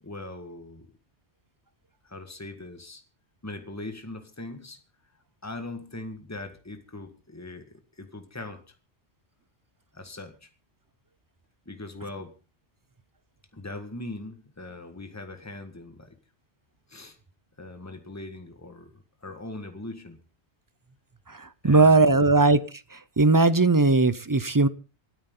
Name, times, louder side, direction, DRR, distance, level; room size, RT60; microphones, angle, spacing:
voice 1, 0.0-0.9 2.0-3.0 3.4-4.8 5.4-8.8 9.9-10.5 11.7-12.3 13.5-16.2 16.9-17.2 17.6-18.9 19.2-20.2 21.6-22.4, left 2 dB, 15° left, 1.7 m, -40 dB
voice 2, 21.3-22.6 22.9-24.7, right 3 dB, 25° right, 0.5 m, -19 dB
26.5 x 9.3 x 3.9 m
omnidirectional pair, 1.2 m